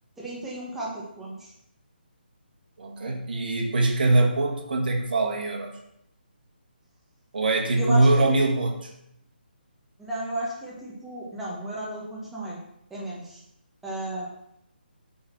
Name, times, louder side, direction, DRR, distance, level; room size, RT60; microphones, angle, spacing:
voice 1, 0.2-1.5 7.8-8.2 10.0-12.6 12.9-13.4 13.8-14.2, right 1 dB, 5° right, -6 dB, 1.3 m, -34 dB
voice 2, 2.8-5.7 7.3-8.9, right 2 dB, 60° right, 2 dB, 1.7 m, -23 dB
8.6 x 4.0 x 6.0 m, 0.79 s
hypercardioid pair, 160°, 6 cm